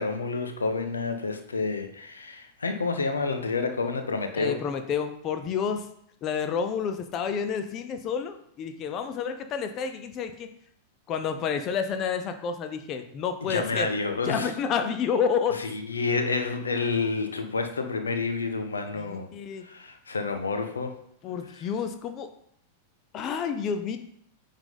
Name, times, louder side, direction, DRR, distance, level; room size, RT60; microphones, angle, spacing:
voice 1, 0.0-4.6 13.4-14.5 15.6-19.3 19.6-20.9, left 4 dB, 75° left, 7 dB, 0.7 m, -29 dB
voice 2, 4.4-5.9 6.2-10.5 11.1-13.9 14.2-15.6 18.9-19.6 21.2-22.3 23.1-24.0, left 6 dB, 35° left, 8 dB, 0.6 m, -29 dB
8.9 x 3.7 x 3.9 m, 0.70 s
figure-of-eight pair, 95°, 0 cm